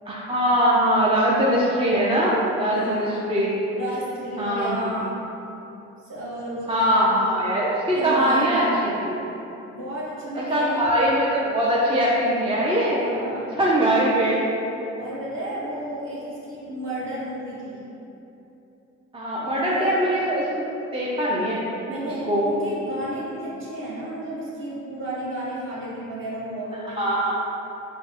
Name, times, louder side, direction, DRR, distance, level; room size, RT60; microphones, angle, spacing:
voice 1, 0.1-3.5 4.4-5.0 6.7-9.2 10.5-13.0 13.5-14.4 19.1-20.5 20.9-21.6 22.2-22.4 27.0-27.3, equal, 20° right, -6 dB, 0.4 m, -22 dB
voice 2, 2.7-3.3 3.7-5.2 6.0-7.0 7.9-8.8 9.7-10.9 13.0-13.6 15.0-17.8 19.6-19.9 21.9-27.2, right 1 dB, 40° right, -8 dB, 1.2 m, -33 dB
5.0 x 2.0 x 2.8 m, 3.0 s
cardioid pair, 90°, 30 cm